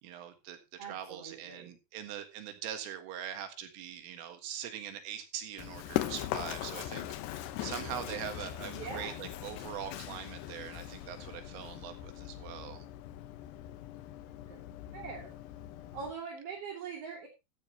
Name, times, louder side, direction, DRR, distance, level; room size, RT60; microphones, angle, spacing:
voice 1, 0.0-7.1 7.3-12.9, right 10 dB, 75° right, 7 dB, 4.1 m, -42 dB
voice 2, 0.8-1.7 8.7-9.1 14.5-14.6 14.9-15.4 15.9-17.3, right 6 dB, 40° right, -1 dB, 2.6 m, -42 dB
Run, 5.6-16.1, left 14 dB, 80° left, 2.5 m, -40 dB
14.5 x 12.0 x 2.9 m, 0.26 s
omnidirectional pair, 5.9 m